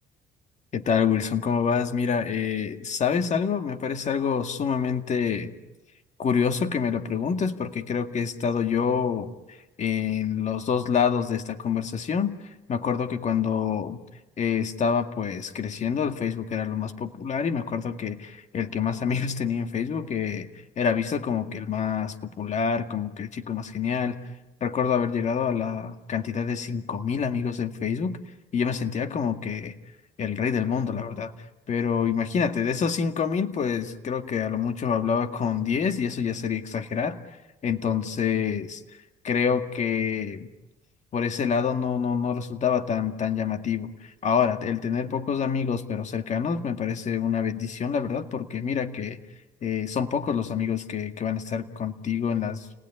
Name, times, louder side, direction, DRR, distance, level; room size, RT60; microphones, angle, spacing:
voice 1, 0.7-5.5 6.2-9.3 9.8-12.4 12.7-14.0 14.4-20.5 20.8-24.2 24.6-28.2 28.5-29.7 30.2-31.3 31.7-37.2 37.6-38.8 39.2-40.5 41.1-49.2 49.6-52.7, left 7 dB, 45° left, 7 dB, 2.1 m, -27 dB
30.0 x 19.5 x 9.7 m, 1.1 s
cardioid pair, 110°, 17 cm